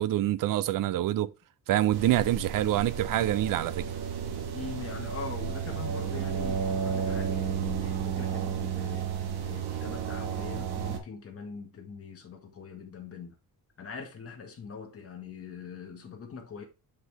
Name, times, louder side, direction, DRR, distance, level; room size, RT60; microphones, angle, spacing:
voice 1, 0.0-1.3 1.7-3.9, right 13 dB, 60° right, 0.5 m, -26 dB
sound 1, 1.9-11.0, right 7 dB, 85° right, 1.5 m, -32 dB
voice 2, 4.5-13.4 13.8-16.6, left 5 dB, 40° left, 1.7 m, -42 dB
7.7 x 5.4 x 3.4 m
cardioid pair, 170°, 38 cm